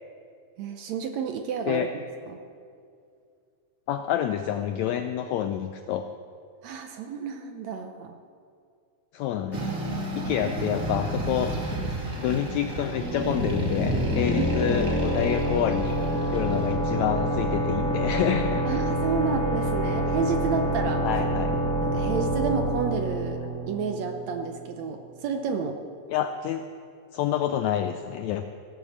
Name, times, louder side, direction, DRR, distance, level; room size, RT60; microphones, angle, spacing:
voice 1, 0.6-2.4 6.6-8.2 10.2-10.8 14.3-14.8 18.6-21.1 21.8-23.4 23.7-25.8, right 5 dB, 75° right, 6 dB, 1.7 m, -31 dB
voice 2, 3.9-6.1 9.1-9.7 10.1-11.7 12.2-16.0 16.3-18.6 21.0-21.5 26.1-26.6 27.1-28.5, left 10 dB, 85° left, 8 dB, 1.6 m, -28 dB
sound 1, 9.5-16.7, right 2 dB, 30° right, 1.8 m, -33 dB
sound 2, 13.0-24.5, equal, 5° left, 1.0 m, -27 dB
17.0 x 8.5 x 7.3 m, 2.4 s
omnidirectional pair, 3.7 m